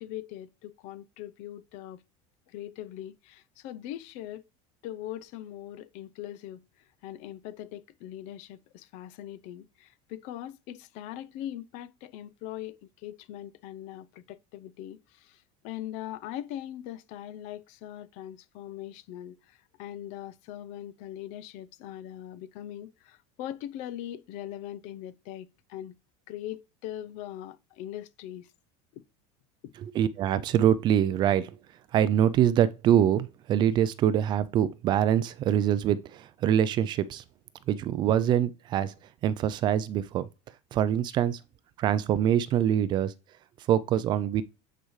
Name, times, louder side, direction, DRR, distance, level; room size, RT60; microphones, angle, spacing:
voice 1, 0.0-2.0 2.5-4.4 4.8-6.6 7.0-15.4 15.6-19.4 19.8-26.0 26.3-28.5 28.9-29.0 29.6-29.7, left 12 dB, 50° left, 0.5 m, -41 dB
voice 2, 29.9-31.5 31.9-37.2 37.7-38.9 39.2-40.3 40.7-41.4 41.8-43.1 43.7-44.4, right 10 dB, 30° right, 0.3 m, -24 dB
8.7 x 4.9 x 3.1 m
cardioid pair, 165°, 15 cm